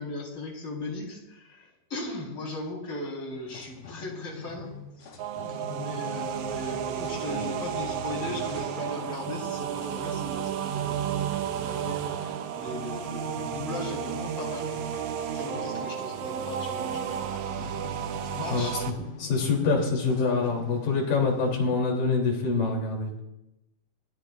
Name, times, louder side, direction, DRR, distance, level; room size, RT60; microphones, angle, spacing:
voice 1, 0.0-4.7 5.0-5.1 5.5-17.7 18.2-18.8, left 2 dB, 35° left, -2 dB, 4.9 m, -38 dB
sound 1, 3.3-21.7, left 5 dB, 90° left, 3.9 m, -46 dB
sound 2, 5.2-18.9, right 9 dB, 70° right, 1.9 m, -32 dB
voice 2, 19.2-23.1, left 4 dB, 70° left, 0 dB, 4.8 m, -25 dB
26.5 x 18.0 x 2.5 m, 0.89 s
omnidirectional pair, 4.1 m